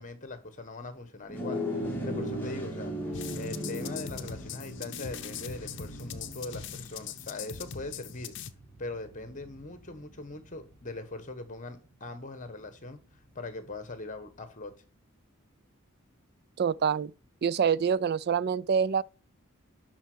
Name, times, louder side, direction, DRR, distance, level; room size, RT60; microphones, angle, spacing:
voice 1, 0.0-1.6 2.0-8.3 8.8-13.0 13.3-14.7, left 2 dB, 40° left, 1.5 m, -41 dB
sound 1, 1.3-10.9, equal, 10° left, 2.6 m, -38 dB
sound 2, 3.1-8.5, left 7 dB, 60° left, 0.8 m, -41 dB
voice 2, 16.6-17.1 17.4-19.0, right 7 dB, 50° right, 0.4 m, -26 dB
11.5 x 4.4 x 6.3 m
head